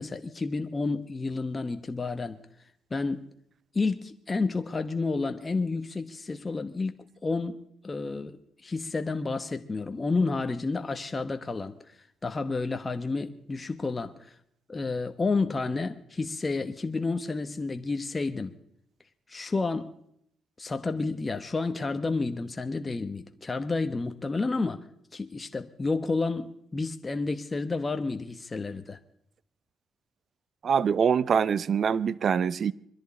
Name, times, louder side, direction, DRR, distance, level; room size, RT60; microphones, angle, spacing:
voice 1, 0.0-2.4 2.9-3.3 3.7-14.3 14.7-18.6 19.3-19.9 20.6-24.8 25.1-29.0, left 3 dB, 25° left, 1.0 m, -30 dB
voice 2, 30.6-32.7, right 7 dB, 55° right, 0.6 m, -24 dB
22.5 x 13.5 x 4.2 m
cardioid pair, 90°, 0 cm